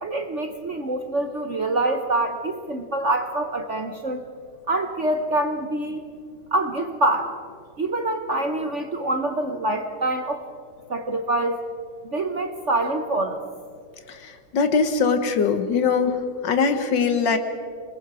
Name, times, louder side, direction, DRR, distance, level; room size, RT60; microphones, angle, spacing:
voice 1, 0.0-4.2 4.7-6.0 6.5-7.3 7.8-10.4 10.9-11.6 12.0-13.4, right 2 dB, 45° right, 6 dB, 1.1 m, -25 dB
voice 2, 14.5-16.2 16.4-17.4, left 5 dB, 60° left, 8 dB, 1.9 m, -21 dB
26.5 x 20.5 x 4.9 m, 2.2 s
omnidirectional pair, 2.3 m